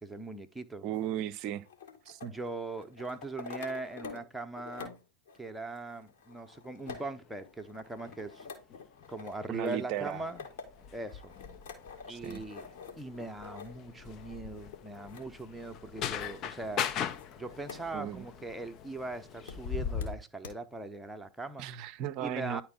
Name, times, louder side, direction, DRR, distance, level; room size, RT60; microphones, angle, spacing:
voice 1, 0.0-0.9 2.3-4.9 5.4-8.5 9.1-10.4 10.9-11.3 12.1-12.7 13.0-16.9 17.3-21.7 22.2-22.6, right 2 dB, 5° right, 0.8 m, -40 dB
voice 2, 0.8-1.7 2.1-2.3 9.5-10.2 12.1-12.4 17.9-18.2 21.6-22.6, right 11 dB, 40° right, 0.5 m, -36 dB
sound 1, 0.9-4.3 4.6-17.9 18.2-18.3 19.5-19.6 20.0-20.1 20.4-20.5, left 5 dB, 60° left, 1.9 m, -48 dB
sound 2, 7.0-7.1 8.1-20.2, left 8 dB, 35° left, 0.6 m, -40 dB
10.0 x 4.3 x 3.8 m
figure-of-eight pair, 90°, 0 cm